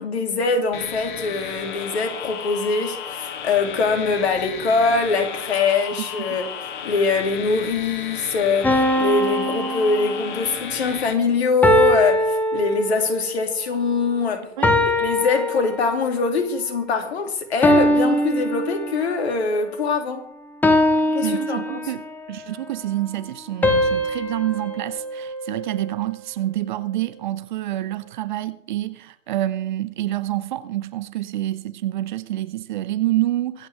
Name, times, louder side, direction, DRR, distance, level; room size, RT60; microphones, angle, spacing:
voice 1, 0.0-6.5 6.8-14.5 15.0-20.3 21.1-21.9, left 4 dB, 55° left, 2.8 m, -23 dB
sound 1, 0.7-11.1, left 8 dB, 40° left, 1.8 m, -34 dB
voice 2, 6.0-6.4 14.6-14.9 21.2-33.7, right 14 dB, 40° right, 0.9 m, -27 dB
sound 2, 8.6-10.6 11.6-13.3 14.6-16.2 17.6-19.3 20.6-22.2 23.6-26.0, left 1 dB, 5° left, 1.2 m, -22 dB
24.0 x 8.7 x 3.5 m
figure-of-eight pair, 120°, 38 cm